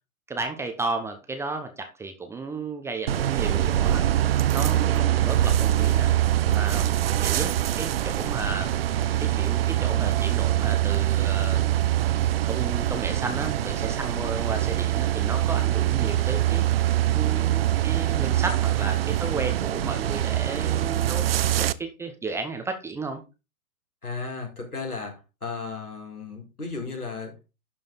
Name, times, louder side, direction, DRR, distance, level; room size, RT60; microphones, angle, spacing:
voice 1, 0.3-4.1 4.5-6.1 6.5-8.7 9.2-11.7 12.5-16.6 17.1-21.3 21.8-23.2, right 3 dB, 5° right, 5 dB, 0.7 m, -33 dB
sound 1, 3.1-21.7, right 12 dB, 45° right, 0.5 m, -24 dB
voice 2, 4.7-5.2 14.3-14.5 24.0-25.1 25.4-27.4, left 4 dB, 85° left, 1 dB, 4.1 m, -35 dB
11.5 x 5.1 x 3.9 m, 0.28 s
figure-of-eight pair, 115°, 43 cm